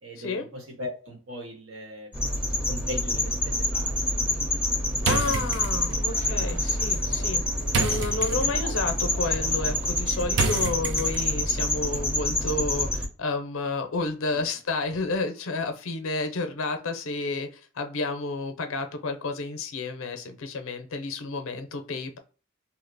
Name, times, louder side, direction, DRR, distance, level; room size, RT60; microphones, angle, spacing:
voice 1, 0.0-2.4 2.7-4.3 5.2-5.4 7.9-8.2 9.0-9.1, left 1 dB, 85° right, 2 dB, 1.1 m, -40 dB
sound 1, 2.1-13.0, left 1 dB, 5° right, 0.7 m, -27 dB
voice 2, 5.0-7.4 7.8-22.2, left 3 dB, 75° left, 7 dB, 0.6 m, -31 dB
sound 2, 5.0-11.5, right 4 dB, 55° right, 0.4 m, -32 dB
2.8 x 2.0 x 3.8 m, 0.38 s
head